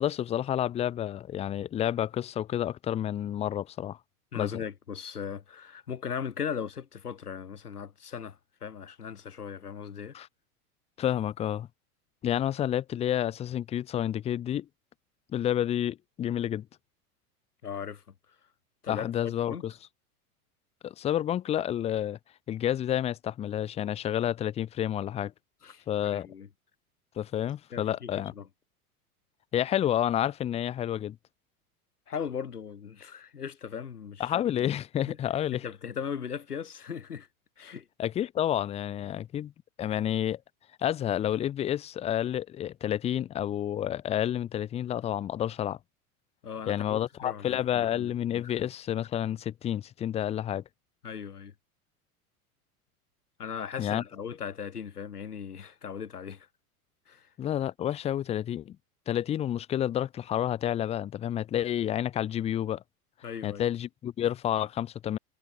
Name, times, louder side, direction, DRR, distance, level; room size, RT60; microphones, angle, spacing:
voice 1, 0.0-4.0 4.3-4.5 10.1-10.3 11.0-11.7 12.2-14.7 15.3-16.7 18.9-19.7 20.8-22.2 22.5-25.3 25.9-26.3 27.2-28.3 29.5-31.2 34.2-35.6 38.0-39.5 39.8-40.4 40.8-45.8 46.7-50.6 53.8-54.0 57.4-58.8 59.1-62.8 63.4-65.2, left 11 dB, 15° left, 0.5 m, -29 dB
voice 2, 4.3-10.2 17.6-18.0 18.8-19.6 25.6-26.5 27.7-28.1 28.3-28.5 32.1-34.3 35.1-35.2 35.5-37.3 37.6-37.9 46.4-48.1 48.4-48.5 51.0-51.5 53.4-56.5 57.1-57.3 63.2-63.6, left 7 dB, 80° left, 2.9 m, -38 dB
figure-of-eight pair, 90°, 45 cm